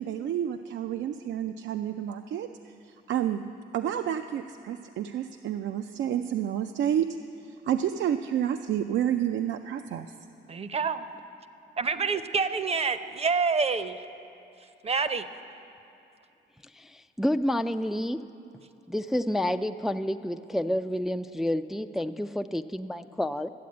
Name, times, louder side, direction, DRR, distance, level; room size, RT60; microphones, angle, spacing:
voice 1, 0.0-3.4 3.7-7.1 7.4-10.1, right 10 dB, 70° right, 7 dB, 0.4 m, -30 dB
voice 2, 10.5-11.0 11.8-13.9 14.8-15.3, right 5 dB, 30° right, 11 dB, 0.7 m, -27 dB
voice 3, 16.7-18.3 18.9-23.5, left 1 dB, ahead, 9 dB, 0.3 m, -29 dB
12.5 x 8.4 x 8.5 m, 2.8 s
cardioid pair, 90°, 20 cm